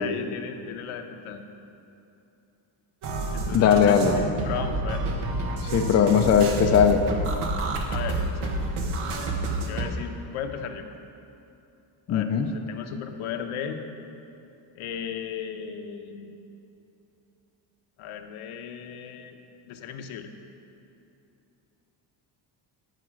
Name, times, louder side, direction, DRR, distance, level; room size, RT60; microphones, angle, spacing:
voice 1, 0.0-1.4 3.3-5.0 7.9-8.9 9.6-10.9 12.1-13.8 14.7-16.3 18.0-19.4 19.7-20.3, left 8 dB, 80° left, 6 dB, 0.9 m, -36 dB
sound 1, 3.0-9.9, right 2 dB, 80° right, 1.2 m, -29 dB
voice 2, 3.5-4.2 5.6-7.0 12.1-12.5, left 7 dB, 35° left, 6 dB, 0.4 m, -19 dB
13.0 x 5.0 x 6.2 m, 2.8 s
cardioid pair, 175°, 49 cm